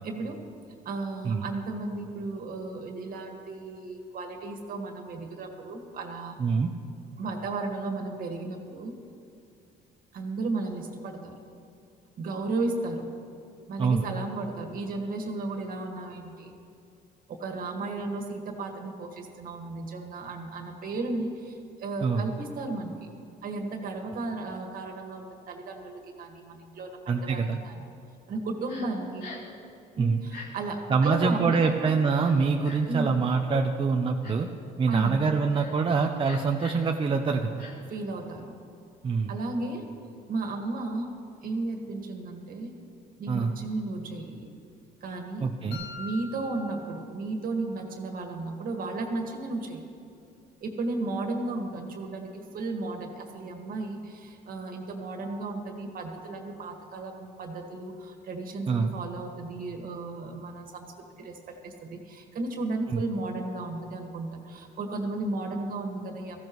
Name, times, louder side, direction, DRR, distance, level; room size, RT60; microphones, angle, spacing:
voice 1, 0.0-0.4 0.9-6.4 7.2-8.9 10.1-11.3 12.2-13.1 13.7-16.5 17.3-23.1 23.4-27.4 27.7-27.8 28.3-29.3 30.0-31.7 32.9-33.1 34.9-35.3 37.9-38.5 39.3-39.9 40.3-41.1 41.4-42.7 43.2-44.5 45.0-45.5 46.0-49.8 50.6-60.9 61.2-61.4 61.6-66.4, right 3 dB, 55° right, 4 dB, 1.8 m, -34 dB
voice 2, 27.1-27.6 30.0-30.2 30.9-34.5 34.8-37.6 39.0-39.3 43.3-43.5 45.4-45.8 58.7-58.9 62.9-63.0, right 5 dB, 30° right, 3 dB, 0.7 m, -25 dB
Crying sobbing, 28.7-28.9 29.2-29.5 30.2-30.5 31.1-31.3 32.2-32.9 33.5-33.6 34.2-34.5 34.9-35.1 35.5-35.7 36.2-36.9 37.6-37.7, left 4 dB, 65° left, 3.2 m, -43 dB
sound 1, 45.7-47.7, left 3 dB, 85° left, 2.0 m, -43 dB
17.5 x 15.0 x 3.1 m, 2.6 s
cardioid pair, 110°, 17 cm